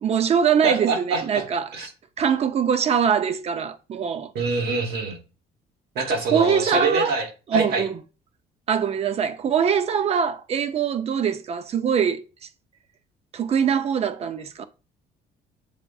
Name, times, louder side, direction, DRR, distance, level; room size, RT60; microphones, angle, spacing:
voice 1, 0.0-1.7 2.2-4.3 6.3-7.2 7.5-8.0 8.7-12.2 13.3-14.6, right 7 dB, 40° right, 0.5 m, -23 dB
voice 2, 0.6-1.4 1.7-1.9 4.3-5.2 5.9-7.9, right 3 dB, 70° right, 1.3 m, -25 dB
7.3 x 2.5 x 2.3 m
cardioid pair, 110°, 17 cm